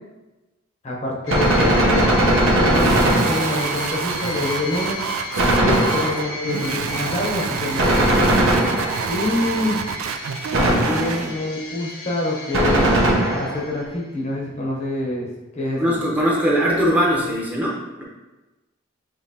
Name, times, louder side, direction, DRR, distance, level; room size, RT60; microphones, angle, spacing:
voice 1, 0.8-5.0 5.6-8.5 9.1-9.8 10.6-12.8 13.3-15.9, left 2 dB, 35° left, -1 dB, 0.7 m, -26 dB
sound 1, 1.3-14.1, left 3 dB, 85° left, 0.9 m, -34 dB
Gunshot gunfire, 1.3-3.8 5.4-6.4 7.8-9.2 10.5-11.3 12.5-13.7, right 1 dB, 70° right, 0.8 m, -19 dB
sound 2, 2.6-11.3, right 6 dB, 90° right, 0.3 m, -28 dB
voice 2, 15.8-18.0, equal, 10° right, -5 dB, 0.7 m, -20 dB
6.2 x 2.8 x 2.8 m, 1.1 s
head